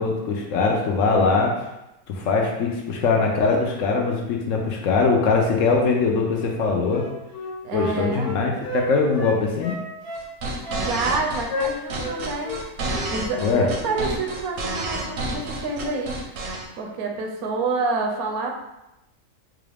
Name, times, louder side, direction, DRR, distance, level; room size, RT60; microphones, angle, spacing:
voice 1, 0.0-1.6 2.1-7.1 7.7-9.8 13.4-13.7, left 4 dB, 70° left, 0 dB, 0.9 m, -21 dB
Wind instrument woodwind instrument, 6.9-8.8 9.2-10.3 10.6-11.2 11.5-12.2 12.4-12.6 12.9-13.5 13.8-14.0, left 2 dB, 45° left, 1.2 m, -32 dB
voice 2, 7.6-8.3 10.8-12.6 13.1-16.2 16.7-18.5, right 3 dB, 80° right, 2 dB, 1.1 m, -28 dB
sound 1, 10.1-16.6, right 2 dB, 60° right, 0.8 m, -29 dB
3.8 x 2.4 x 3.3 m, 0.91 s
omnidirectional pair, 1.5 m